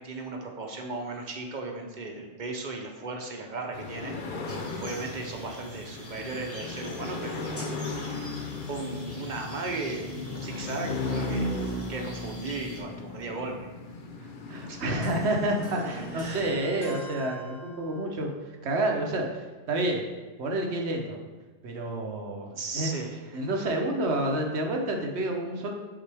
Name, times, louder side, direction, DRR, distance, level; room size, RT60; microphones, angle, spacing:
voice 1, 0.0-7.4 8.1-8.3 8.7-11.5 11.9-13.7 14.7-14.8 16.1-16.5 22.6-23.5, right 3 dB, 50° right, 2 dB, 0.8 m, -36 dB
sound 1, 3.7-17.2, left 2 dB, 55° left, 0.8 m, -36 dB
sound 2, 4.5-12.8, left 1 dB, 15° left, 1.1 m, -44 dB
voice 2, 14.2-18.3 18.6-20.0 20.4-21.2 21.6-22.9 23.3-25.7, right 1 dB, 75° right, 2 dB, 1.2 m, -29 dB
sound 3, 15.0-18.2, equal, 75° left, 1.9 m, -47 dB
7.3 x 4.0 x 3.4 m, 1.3 s
omnidirectional pair, 1.1 m